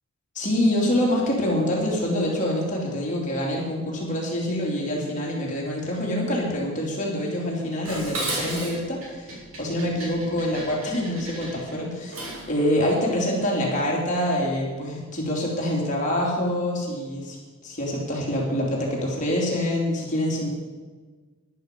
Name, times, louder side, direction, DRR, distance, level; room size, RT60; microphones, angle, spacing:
voice 1, 0.3-20.5, left 1 dB, 35° left, -3 dB, 3.1 m, -26 dB
Dishes pots and pans, 7.8-12.5, right 2 dB, 65° right, 4.0 m, -35 dB
13.5 x 11.0 x 5.3 m, 1.4 s
head